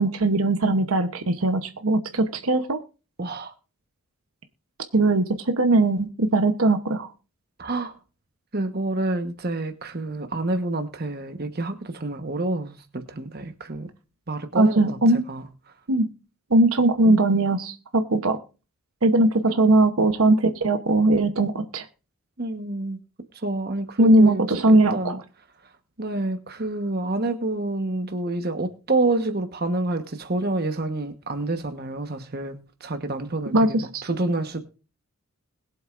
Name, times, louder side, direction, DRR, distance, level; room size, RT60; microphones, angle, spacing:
voice 1, 0.0-2.8 4.9-7.1 14.5-15.2 15.9-16.1 16.5-18.4 19.0-21.8 24.0-25.2 33.5-34.0, right 2 dB, 80° right, 8 dB, 1.0 m, -20 dB
voice 2, 3.2-3.5 7.6-8.0 8.5-13.9 14.3-15.0 15.3-15.5 17.0-17.2 22.4-23.0 23.4-25.2 26.0-34.6, right 2 dB, 45° right, 8 dB, 1.2 m, -28 dB
21.5 x 7.9 x 2.5 m, 0.34 s
head